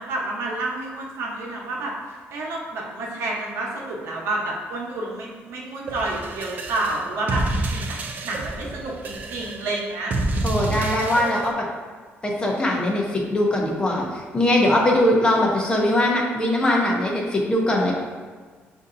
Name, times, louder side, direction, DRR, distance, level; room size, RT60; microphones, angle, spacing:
voice 1, 0.0-1.9 2.3-8.0 8.2-10.2, right 2 dB, 75° right, -2 dB, 0.8 m, -29 dB
sound 1, 5.9-11.5, right 2 dB, 40° right, 0.4 m, -28 dB
voice 2, 10.4-11.6 12.2-17.9, left 1 dB, 20° left, -1 dB, 0.6 m, -21 dB
6.4 x 2.6 x 2.5 m, 1.5 s
cardioid pair, 160°, 5 cm